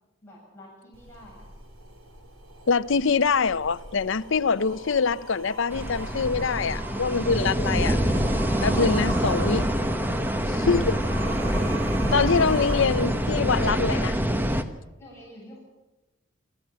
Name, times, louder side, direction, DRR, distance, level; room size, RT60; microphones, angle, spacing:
voice 1, 0.2-1.5 15.0-15.6, equal, 15° left, 8.0 m, -48 dB
sound 1, 0.9-13.9, right 2 dB, 85° right, 3.3 m, -41 dB
voice 2, 2.7-8.0 8.6-9.7 10.5-11.0 12.1-14.2, left 5 dB, 65° left, 0.7 m, -24 dB
sound 2, 5.7-14.6, equal, 10° right, 1.2 m, -25 dB
27.0 x 14.0 x 8.9 m
head